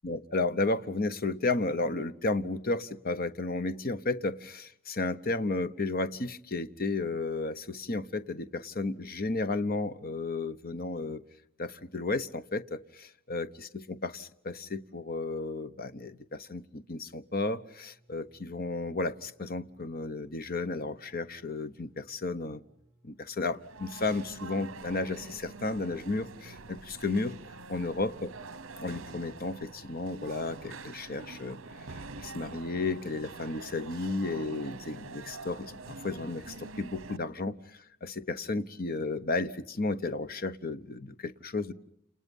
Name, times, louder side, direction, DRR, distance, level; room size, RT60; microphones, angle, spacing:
voice 1, 0.0-11.2 11.6-22.6 23.0-27.3 27.7-28.3 28.8-31.6 32.2-41.7, left 3 dB, 45° left, 1.1 m, -33 dB
sound 1, 17.6-31.8, right 1 dB, 15° right, 4.2 m, -66 dB
sound 2, 23.5-37.2, right 4 dB, 70° right, 1.0 m, -46 dB
30.0 x 28.5 x 5.5 m
head